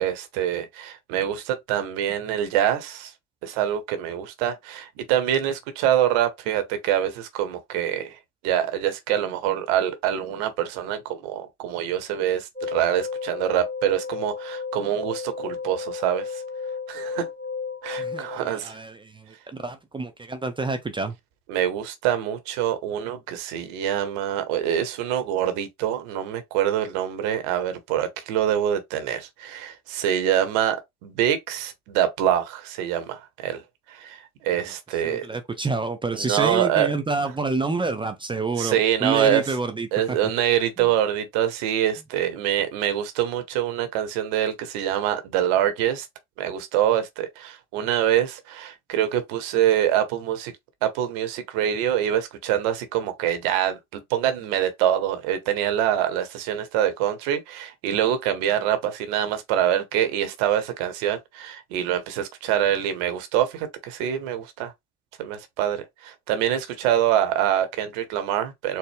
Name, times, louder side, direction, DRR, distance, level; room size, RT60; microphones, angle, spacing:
voice 1, 0.0-3.1 3.4-8.2 8.4-16.4 16.9-17.2 17.8-18.8 21.5-33.6 33.9-35.3 36.1-36.9 38.6-39.6 39.9-46.1 46.4-50.5 50.8-64.7 65.2-68.8, right 10 dB, 60° right, 1.0 m, -25 dB
sound 1, 12.6-18.4, left 5 dB, 15° left, 1.4 m, -33 dB
voice 2, 18.0-21.1 35.0-39.9 40.8-40.9, right 3 dB, 10° right, 0.5 m, -28 dB
4.2 x 2.1 x 3.4 m
hypercardioid pair, 75°, 43 cm